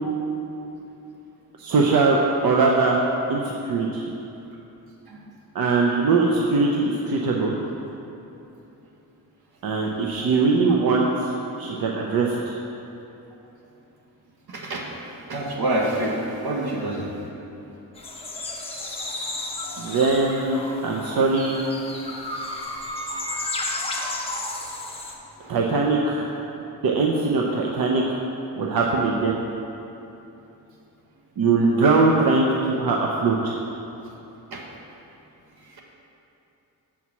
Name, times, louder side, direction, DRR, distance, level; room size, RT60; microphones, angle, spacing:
voice 1, 1.6-3.0 3.3-4.0 5.5-7.6 9.6-11.3 11.6-12.5 19.8-21.6 25.5-26.3 26.8-28.0 28.6-29.4 31.4-33.6, right 3 dB, 70° right, -1 dB, 0.7 m, -21 dB
voice 2, 14.5-14.9 15.3-17.1 18.8-18.9 25.4-25.6 34.5-34.6 35.6-35.8, right 1 dB, 90° right, -1 dB, 1.3 m, -27 dB
sound 1, 18.0-25.1, left 2 dB, 15° left, 0.8 m, -32 dB
7.1 x 4.6 x 6.9 m, 2.9 s
wide cardioid pair, 165°, 37 cm